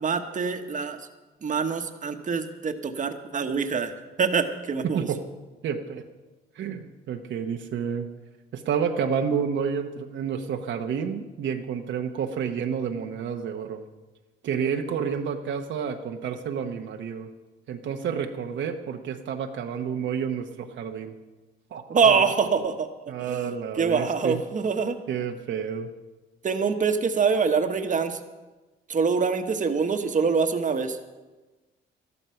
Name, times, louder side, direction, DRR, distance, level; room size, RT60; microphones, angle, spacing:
voice 1, 0.0-1.0 1.4-3.9 4.2-5.1 21.9-22.9 23.3-23.5 23.8-25.0 26.4-28.2 28.9-31.0, right 5 dB, 40° right, 7 dB, 1.2 m, -24 dB
voice 2, 4.8-5.2 5.6-6.0 6.6-8.1 8.5-13.8 14.4-17.3 17.7-21.1 21.7-22.3 23.1-24.4 25.1-25.9, right 7 dB, 70° right, 4 dB, 1.0 m, -30 dB
13.0 x 12.5 x 5.7 m, 1.2 s
cardioid pair, 90°, 20 cm